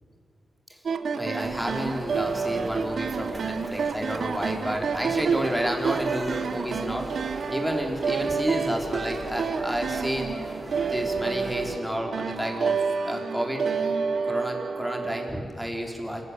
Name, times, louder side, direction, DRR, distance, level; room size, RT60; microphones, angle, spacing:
sound 1, 0.8-15.4, right 5 dB, 65° right, 1.2 m, -29 dB
voice 1, 1.1-7.1 7.5-10.3 10.9-12.8 13.0-13.6 14.2-16.2, equal, ahead, 1 dB, 3.7 m, -30 dB
sound 2, 1.4-11.8, right 2 dB, 25° right, 3.0 m, -40 dB
26.5 x 15.5 x 9.6 m, 2.3 s
wide cardioid pair, 100°, 0 cm